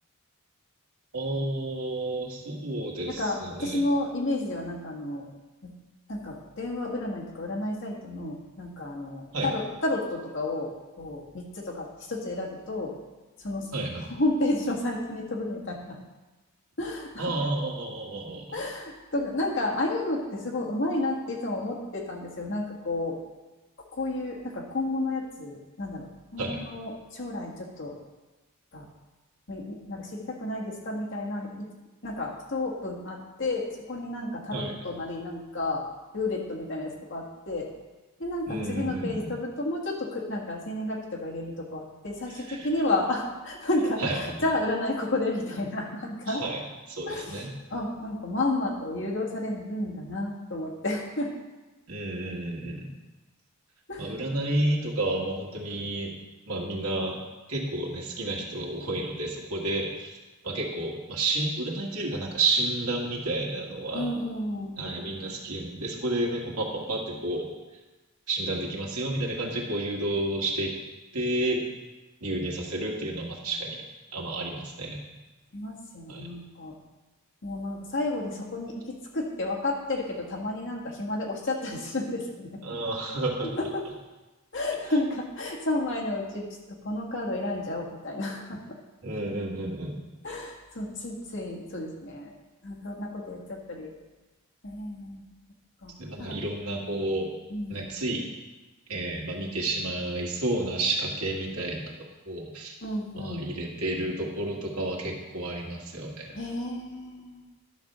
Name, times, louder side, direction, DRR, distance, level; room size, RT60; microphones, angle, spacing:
voice 1, 1.1-3.8 9.3-9.5 13.7-14.0 17.2-18.6 26.4-26.6 34.5-34.8 38.5-39.3 42.5-42.7 44.0-44.4 46.3-46.6 46.9-47.5 51.9-52.9 54.0-56.1 56.5-57.2 57.5-60.2 60.4-64.1 64.8-67.5 68.3-70.7 71.1-71.6 72.2-73.8 74.1-75.0 76.1-76.3 82.6-83.5 89.0-90.0 96.0-97.3 97.7-98.3 98.9-102.7 103.2-106.4, right 2 dB, 85° right, -1 dB, 1.9 m, -31 dB
voice 2, 3.1-5.3 5.6-5.7 6.1-12.9 13.4-13.7 14.1-16.0 16.8-17.3 18.5-23.2 23.9-28.0 28.7-28.9 29.5-31.7 32.0-35.8 36.1-37.7 38.2-46.4 47.1-47.4 47.7-51.3 53.9-54.1 63.9-64.7 75.5-76.7 77.4-82.6 83.6-83.8 84.5-88.6 90.2-92.3 92.6-93.9 94.6-95.3 95.8-95.9 96.2-96.4 97.5-97.8 102.8-103.4 106.3-107.4, left 2 dB, 55° left, -2 dB, 1.7 m, -31 dB
11.0 x 4.4 x 6.7 m, 1.2 s
head